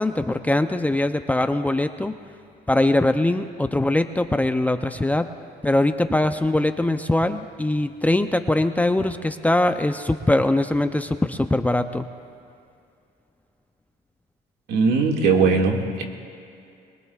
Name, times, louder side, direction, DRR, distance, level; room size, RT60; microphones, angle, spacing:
voice 1, 0.0-2.1 2.7-5.3 5.6-12.1, left 1 dB, 10° left, 8 dB, 0.5 m, -22 dB
voice 2, 14.7-16.0, right 4 dB, 75° right, 1 dB, 2.0 m, -19 dB
23.5 x 22.0 x 2.4 m, 2.5 s
cardioid pair, 110°, 17 cm